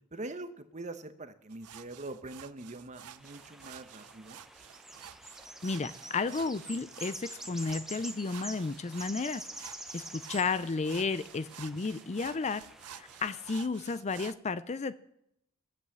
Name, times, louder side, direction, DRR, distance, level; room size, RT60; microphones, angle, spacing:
voice 1, 0.1-4.4, right 2 dB, 30° right, 10 dB, 1.0 m, -43 dB
sound 1, 1.5-14.4, right 10 dB, 85° right, 0.7 m, -51 dB
sound 2, 3.1-13.6, right 1 dB, ahead, 0.9 m, -47 dB
voice 2, 5.6-9.4 9.9-14.9, left 4 dB, 30° left, 15 dB, 0.4 m, -33 dB
17.5 x 8.1 x 7.6 m, 0.79 s
head